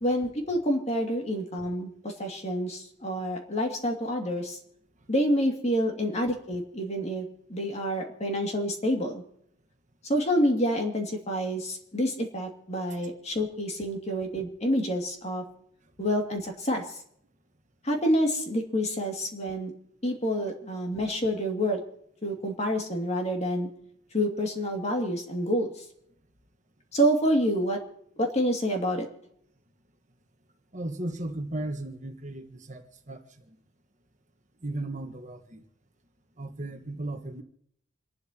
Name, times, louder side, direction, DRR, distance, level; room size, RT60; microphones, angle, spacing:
voice 1, 0.0-4.6 5.1-9.2 10.1-15.4 16.0-16.9 17.8-19.7 20.0-21.8 22.2-23.7 24.1-25.8 26.9-27.8 28.2-29.1, equal, 30° left, 2 dB, 2.4 m, -28 dB
voice 2, 30.7-33.2 33.5-33.6 34.6-35.6 36.4-37.4, right 1 dB, 35° right, 4 dB, 1.5 m, -36 dB
28.0 x 11.5 x 2.9 m, 0.70 s
head